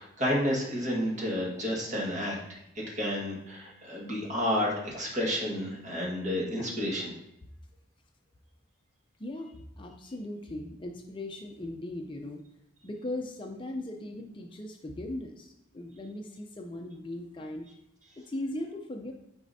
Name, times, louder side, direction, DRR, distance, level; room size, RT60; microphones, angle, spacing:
voice 1, 0.0-7.1, equal, 35° right, -3 dB, 1.7 m, -31 dB
voice 2, 9.2-12.4 12.8-17.7 18.2-19.1, left 1 dB, 25° left, 2 dB, 0.5 m, -38 dB
9.6 x 5.0 x 2.7 m, 0.81 s
head